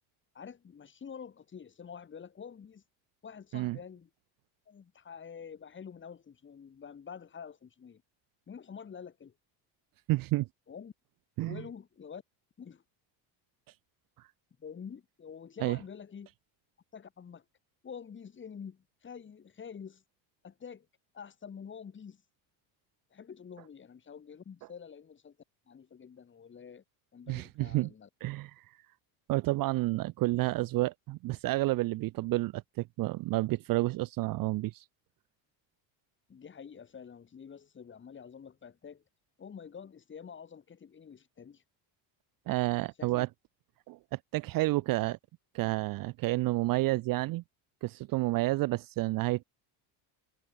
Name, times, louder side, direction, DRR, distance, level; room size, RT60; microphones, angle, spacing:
voice 1, 0.3-2.8 3.2-4.1 4.7-8.0 8.5-9.3 10.7-10.9 11.4-12.2 12.6-12.8 14.6-16.3 16.9-17.5 17.8-20.0 20.4-20.9 21.1-22.2 23.1-25.4 25.7-26.8 27.1-28.1 36.3-39.0 39.4-41.6 43.0-43.3 44.9-45.0, left 7 dB, 25° left, 6.9 m, -47 dB
voice 2, 10.1-10.5 11.4-11.6 15.6-15.8 27.3-27.9 28.2-28.6 29.3-34.8 42.5-43.3 43.9-45.2 45.5-47.4 47.8-49.4, right 19 dB, 45° right, 0.7 m, -30 dB
cardioid pair, 165°, 48 cm